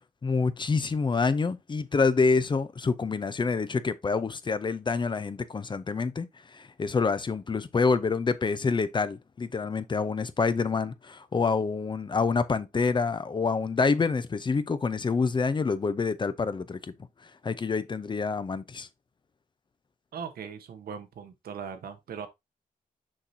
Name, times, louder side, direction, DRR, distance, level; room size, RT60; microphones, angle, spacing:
voice 1, 0.2-6.3 6.5-16.9 17.2-18.9, left 4 dB, 30° left, 0.6 m, -27 dB
voice 2, 20.1-22.3, right 7 dB, 85° right, 1.1 m, -39 dB
6.4 x 5.9 x 2.7 m
wide cardioid pair, 125°, 15 cm